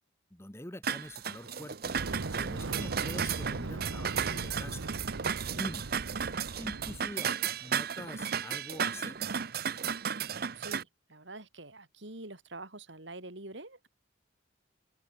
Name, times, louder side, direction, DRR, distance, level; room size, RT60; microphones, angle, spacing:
voice 1, 0.3-1.9 2.3-4.9 5.5-5.9 6.5-9.2, left 1 dB, 15° left, 1.7 m, -45 dB
sound 1, 0.8-10.8, right 7 dB, 50° right, 0.8 m, -34 dB
Fire, 1.8-7.1, right 3 dB, 90° right, 0.9 m, -39 dB
voice 2, 10.5-13.9, right 2 dB, 70° right, 3.8 m, -46 dB
open air
head